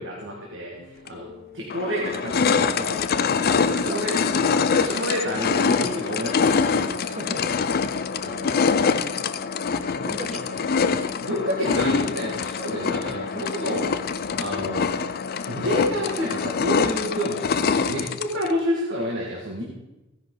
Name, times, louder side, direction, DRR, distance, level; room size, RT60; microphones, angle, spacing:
voice 1, 0.0-6.9 11.2-13.8 14.4-14.9 15.5-19.6, equal, 60° right, -3 dB, 2.0 m, -29 dB
sound 1, 1.1-1.2 1.7-18.5, left 5 dB, 45° left, 0.5 m, -24 dB
voice 2, 3.5-4.0 7.0-7.7 8.2-9.4 9.9-10.8 15.9-16.1, right 1 dB, 30° right, 4 dB, 1.3 m, -38 dB
15.5 x 10.0 x 3.9 m, 1.0 s
head